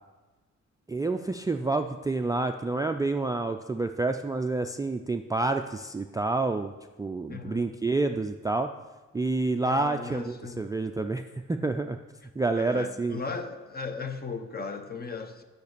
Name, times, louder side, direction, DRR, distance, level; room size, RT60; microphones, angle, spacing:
voice 1, 0.9-6.7 7.0-8.7 9.1-12.0 12.4-13.2, right 3 dB, 15° right, 0.3 m, -28 dB
voice 2, 7.3-7.7 9.6-10.6 12.5-15.4, left 4 dB, 30° left, 0.8 m, -37 dB
8.4 x 6.6 x 6.7 m
cardioid pair, 120°, 29 cm